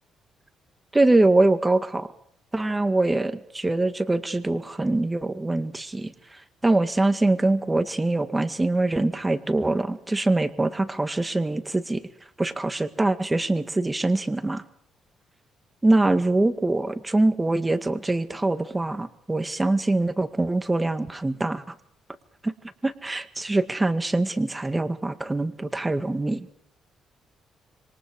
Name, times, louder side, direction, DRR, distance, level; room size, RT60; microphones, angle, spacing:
voice 1, 0.9-2.1 2.5-6.1 6.6-12.0 12.4-14.6 15.8-21.6 22.4-22.5 22.8-26.5, right 2 dB, 15° right, 10 dB, 1.9 m, -23 dB
27.0 x 23.5 x 4.9 m, 0.67 s
cardioid pair, 90°, 0 cm